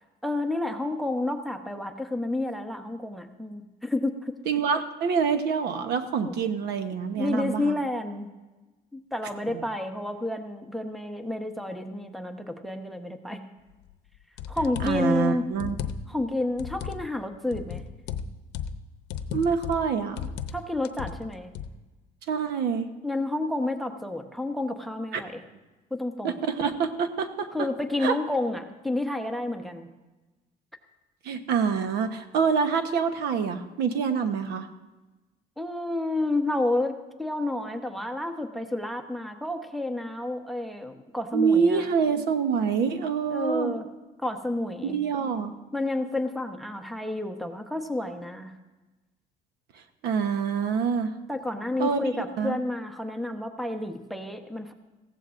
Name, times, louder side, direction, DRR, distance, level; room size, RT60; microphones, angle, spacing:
voice 1, 0.2-4.4 6.2-6.3 7.1-8.3 8.9-13.4 14.5-15.5 16.1-17.8 20.5-21.5 23.0-25.4 25.9-26.4 27.5-29.9 35.6-41.8 43.3-43.8 44.2-45.0 45.7-48.6 51.3-54.7, left 2 dB, ahead, 5 dB, 1.0 m, -30 dB
voice 2, 4.5-7.8 9.5-9.6 14.8-15.7 19.3-20.3 22.3-22.9 25.1-25.2 26.2-27.7 28.0-28.1 31.2-34.7 41.3-43.7 44.8-45.5 50.0-51.1 51.8-52.0 52.4-52.6, right 6 dB, 80° right, 8 dB, 1.1 m, -26 dB
sound 1, 13.9-14.0 14.4-15.1 15.5-16.2 16.6-17.0 17.5-18.8 19.1-19.9 20.2-20.6 20.8-21.7, left 7 dB, 90° left, 0.7 m, -35 dB
19.0 x 15.0 x 2.5 m, 1.1 s
cardioid pair, 110°, 17 cm